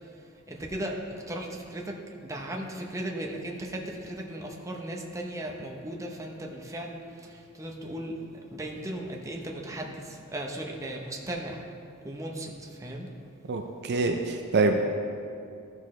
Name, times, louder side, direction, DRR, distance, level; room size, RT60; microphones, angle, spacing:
voice 1, 0.5-2.0 2.2-8.2 8.5-11.6 12.0-13.1, right 1 dB, 15° right, 0 dB, 0.8 m, -36 dB
voice 2, 13.5-14.8, right 3 dB, 50° right, 4 dB, 0.5 m, -25 dB
13.5 x 6.2 x 3.2 m, 2.5 s
head